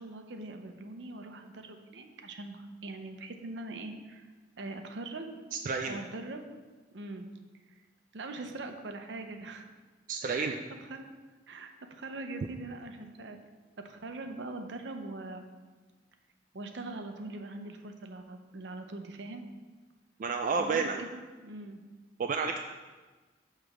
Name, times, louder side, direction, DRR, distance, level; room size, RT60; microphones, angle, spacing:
voice 1, 0.0-4.2 4.6-5.3 5.9-6.4 6.9-7.3 8.1-9.7 10.2-10.6 10.9-11.1 11.5-13.4 13.8-15.5 16.5-19.5 20.6-21.8, right 2 dB, 75° right, 6 dB, 0.7 m, -42 dB
voice 2, 5.5-6.0 10.1-10.6 20.2-21.0 22.2-22.6, right 4 dB, 45° right, 4 dB, 0.3 m, -30 dB
6.7 x 3.2 x 6.1 m, 1.3 s
head